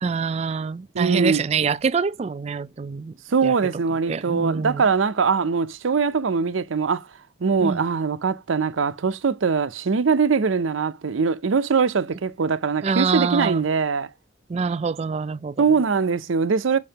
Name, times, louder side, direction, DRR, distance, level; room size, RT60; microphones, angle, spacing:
voice 1, 0.0-3.1 3.4-3.5 4.1-4.8 7.6-7.8 12.8-13.7 14.5-15.6, right 5 dB, 35° right, 0.3 m, -25 dB
voice 2, 0.9-1.4 3.3-7.1 7.4-14.1 15.6-16.8, right 5 dB, 90° right, 0.6 m, -22 dB
6.4 x 5.2 x 2.8 m
head